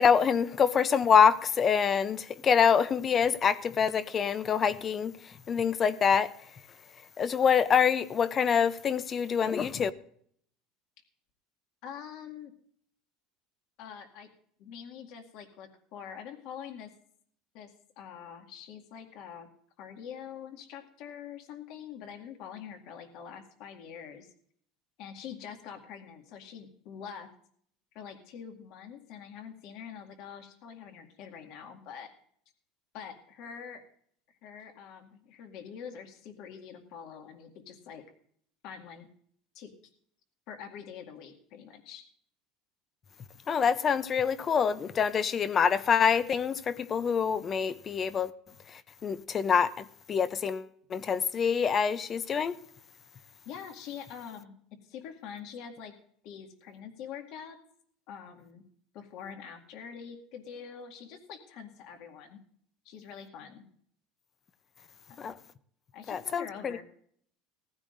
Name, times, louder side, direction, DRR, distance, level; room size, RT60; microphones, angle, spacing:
voice 1, 0.0-6.3 7.2-9.9 43.5-48.3 48.7-52.6 65.2-65.4 66.1-66.8, left 7 dB, 25° left, 0.6 m, -26 dB
voice 2, 11.8-12.5 13.8-14.3 14.6-16.9 17.5-19.5 19.8-24.3 25.0-27.3 27.9-32.1 32.9-33.8 34.4-38.0 38.6-39.1 39.5-39.7 40.5-42.0 53.5-54.6 54.8-55.9 56.2-57.6 58.1-58.6 58.9-62.4 62.8-63.6 65.3-65.4 65.9-66.8, left 8 dB, 60° left, 2.1 m, -45 dB
19.5 x 15.0 x 2.6 m
cardioid pair, 150°, 0 cm